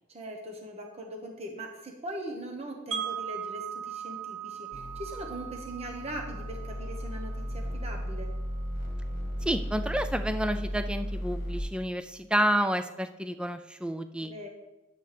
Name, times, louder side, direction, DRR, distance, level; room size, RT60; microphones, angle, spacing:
voice 1, 0.1-8.3 14.2-14.5, right 1 dB, 30° right, 2 dB, 1.1 m, -40 dB
Wind chime, 2.9-8.9, right 9 dB, 65° right, 1.3 m, -40 dB
sound 1, 4.7-11.6, equal, 40° left, 1.7 m, -35 dB
voice 2, 9.4-14.3, equal, 5° right, 8 dB, 0.3 m, -29 dB
10.5 x 9.3 x 3.4 m, 1.1 s
head